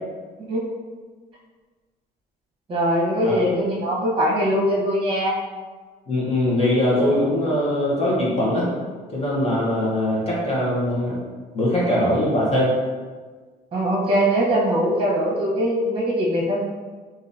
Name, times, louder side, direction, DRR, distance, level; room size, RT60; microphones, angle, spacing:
voice 1, 2.7-5.4 13.7-16.7, equal, 35° right, -3 dB, 1.1 m, -21 dB
voice 2, 6.1-8.7 9.1-11.2 11.5-12.7, left 1 dB, 35° left, -6 dB, 1.2 m, -21 dB
3.8 x 2.7 x 2.7 m, 1.4 s
cardioid pair, 110°, 17 cm